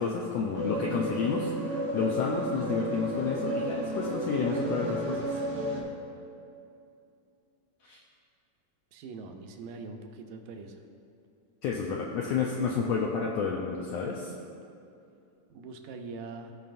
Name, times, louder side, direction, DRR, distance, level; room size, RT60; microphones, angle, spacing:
voice 1, 0.0-5.4 7.8-8.0 11.6-14.3, left 5 dB, 90° left, -1 dB, 1.5 m, -30 dB
sound 1, 0.5-5.8, right 1 dB, 65° right, 0.9 m, -32 dB
voice 2, 8.9-10.8 15.5-16.5, right 4 dB, 85° right, 4 dB, 2.1 m, -42 dB
15.5 x 5.4 x 2.5 m, 2.6 s
omnidirectional pair, 3.5 m